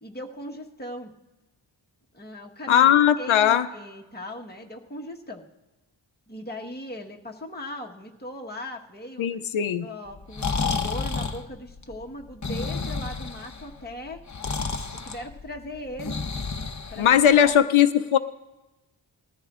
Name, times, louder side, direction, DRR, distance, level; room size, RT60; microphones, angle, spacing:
voice 1, 0.0-1.1 2.1-2.9 3.2-5.5 6.3-9.4 9.8-14.2 14.9-16.2 16.9-17.7, left 1 dB, 20° left, 0 dB, 1.3 m, -39 dB
voice 2, 2.7-3.7 9.2-9.9 17.0-18.2, left 9 dB, 85° left, 11 dB, 0.6 m, -19 dB
Breathing, 10.1-17.5, left 4 dB, 40° left, 0.8 m, -31 dB
20.0 x 14.0 x 2.4 m, 1.1 s
wide cardioid pair, 70°, 47 cm